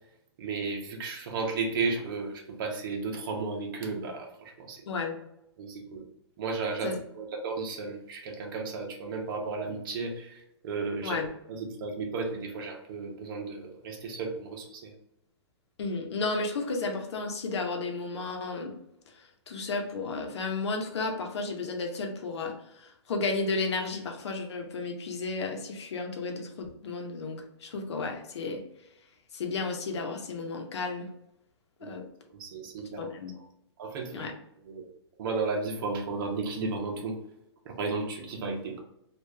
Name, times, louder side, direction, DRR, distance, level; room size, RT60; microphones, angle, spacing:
voice 1, 0.4-4.8 5.6-6.1 6.4-11.2 11.5-14.9 31.8-31.9 32.3-33.1 33.4-33.5 33.8-34.3 34.6-34.9 35.2-37.2 37.6-38.8, right 4 dB, 50° right, 2 dB, 0.9 m, -34 dB
voice 2, 4.9-5.2 6.8-7.0 11.0-11.3 15.8-18.7 19.5-28.6 29.3-31.1 31.8-32.0 33.0-33.3 34.1-34.3, left 3 dB, 70° left, 3 dB, 0.9 m, -33 dB
3.2 x 2.5 x 3.3 m, 0.81 s
hypercardioid pair, 150°, 15 cm